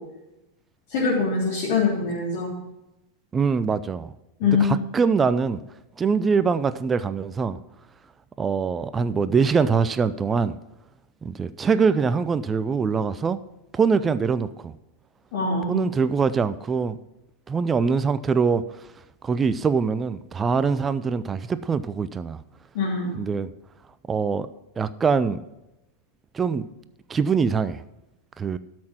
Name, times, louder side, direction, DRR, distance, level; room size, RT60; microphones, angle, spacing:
voice 1, 0.9-2.5 4.4-4.7 15.3-15.9 22.7-23.1, left 5 dB, 50° left, -6 dB, 3.1 m, -23 dB
voice 2, 3.3-4.1 4.4-5.6 6.0-7.6 8.4-10.5 11.2-13.4 13.7-14.7 15.7-17.0 17.5-18.6 19.2-22.4 23.2-23.5 24.1-24.5 24.8-25.4 26.3-26.7 27.1-27.8 28.4-28.6, right 5 dB, 20° right, 15 dB, 0.5 m, -23 dB
12.5 x 6.2 x 5.7 m, 0.92 s
figure-of-eight pair, 90°, 0 cm